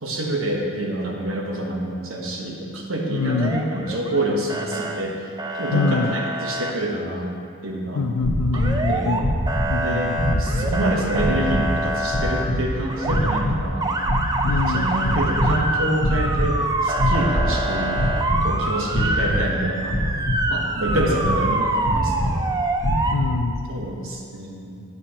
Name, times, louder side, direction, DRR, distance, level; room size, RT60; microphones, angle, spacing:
voice 1, 0.0-5.2 5.5-7.3 7.6-8.0 8.5-9.2 9.8-13.9 14.4-18.0 18.4-20.0 20.5-22.5 23.7-24.8, right 1 dB, 65° right, -1 dB, 1.0 m, -27 dB
voice 2, 3.1-3.6 5.7-6.2 7.9-9.2 9.7-10.4 14.5-14.9 23.1-23.7, left 4 dB, 80° left, 9 dB, 0.4 m, -25 dB
Motor vehicle (road) / Siren, 3.2-4.2 4.5-5.0 5.4-6.7 8.5-9.2 9.5-12.4 12.9-13.4 13.8-23.2, right 2 dB, 15° right, 0.3 m, -26 dB
sound 1, 8.2-8.8 9.2-9.8 10.1-10.8 11.1-11.7 12.1-12.6 13.0-13.7 14.0-14.7 15.0-15.6 16.0-16.5 16.9-17.6 17.9-18.5 18.9-19.4 19.9-20.5 20.8-21.4 21.8-22.4 22.8-23.4, equal, 55° left, 1.3 m, -23 dB
9.4 x 6.8 x 2.9 m, 2.3 s
head